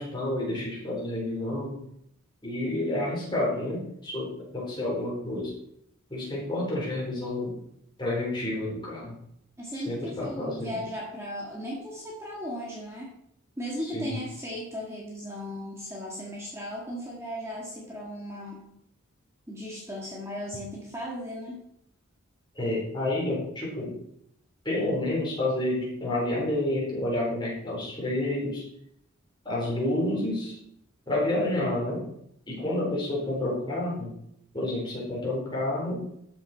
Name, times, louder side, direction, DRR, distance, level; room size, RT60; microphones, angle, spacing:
voice 1, 0.0-1.8 2.4-5.5 6.1-7.5 8.0-9.2 9.7-10.8 13.8-14.2 22.5-23.9 24.6-28.6 29.4-30.6 31.1-32.0 32.5-34.1 34.5-36.0, left 1 dB, 20° left, -4 dB, 4.3 m, -29 dB
voice 2, 9.6-13.1 13.6-18.6 19.5-21.6, equal, 15° right, -3 dB, 1.7 m, -36 dB
13.0 x 6.9 x 4.5 m, 0.75 s
head